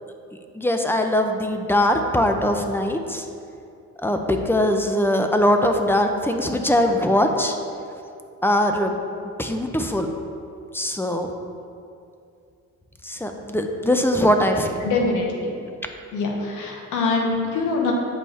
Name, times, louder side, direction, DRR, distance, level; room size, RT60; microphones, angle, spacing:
voice 1, 0.5-3.3 4.0-7.6 8.4-8.9 9.4-10.1 10.7-11.3 13.0-14.8, left 1 dB, 5° left, 4 dB, 0.7 m, -21 dB
voice 2, 14.8-15.5 16.1-17.9, left 3 dB, 80° left, -1 dB, 1.3 m, -24 dB
8.1 x 5.4 x 4.2 m, 2.5 s
cardioid pair, 90°, 30 cm